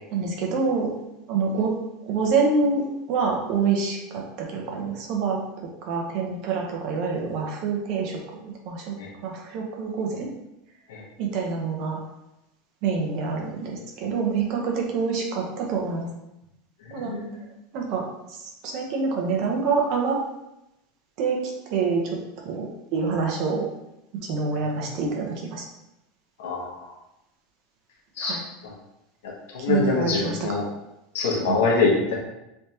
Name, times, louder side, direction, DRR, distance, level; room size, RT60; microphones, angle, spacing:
voice 1, 0.1-0.9 1.3-1.7 2.1-5.4 5.8-8.2 8.4-8.9 9.2-10.3 11.2-12.0 12.8-16.1 16.9-17.1 17.7-18.4 18.6-20.2 21.2-21.4 21.7-22.2 22.4-23.7 24.2-25.6 28.2-28.4 29.6-30.5 31.5-31.6, right 4 dB, 55° right, 0 dB, 0.9 m, -26 dB
voice 2, 16.9-17.4 26.4-26.8 28.2-28.4 29.5-30.6 31.1-32.2, left 4 dB, 85° left, -2 dB, 1.0 m, -24 dB
3.3 x 3.2 x 2.9 m, 0.90 s
supercardioid pair, 120°, 0 cm